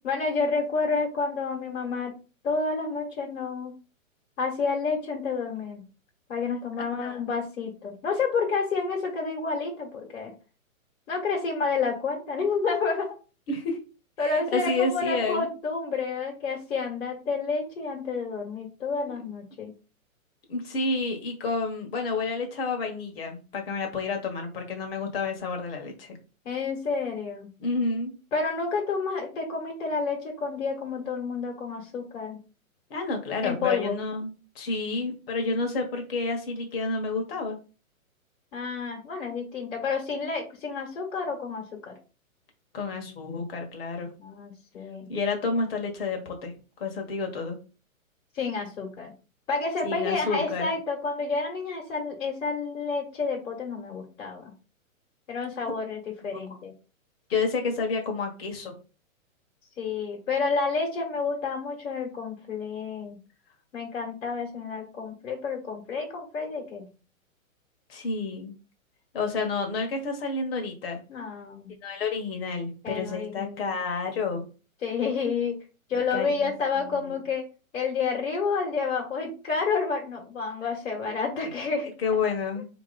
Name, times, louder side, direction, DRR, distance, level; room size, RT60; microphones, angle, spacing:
voice 1, 0.0-2.1 2.4-3.7 4.4-5.8 6.3-10.3 11.1-13.2 14.2-19.7 26.4-27.5 28.3-32.4 33.4-34.0 38.5-41.9 44.2-45.1 48.3-49.1 49.5-54.5 55.3-56.7 59.8-63.2 63.7-66.9 71.1-71.7 72.8-73.8 74.8-75.6 75.9-77.5 77.7-81.9, left 4 dB, 65° left, 0 dB, 1.7 m, -29 dB
voice 2, 13.5-13.8 14.2-15.5 19.1-19.2 20.5-26.2 27.6-28.1 32.9-37.5 42.7-44.1 45.1-46.5 46.8-47.6 49.8-50.7 56.5-56.6 57.3-58.7 67.9-68.5 69.1-71.0 71.8-74.5 76.1-77.2 82.0-82.6, left 4 dB, 45° left, 3 dB, 1.5 m, -30 dB
4.2 x 3.0 x 4.1 m, 0.33 s
hypercardioid pair, 160°, 41 cm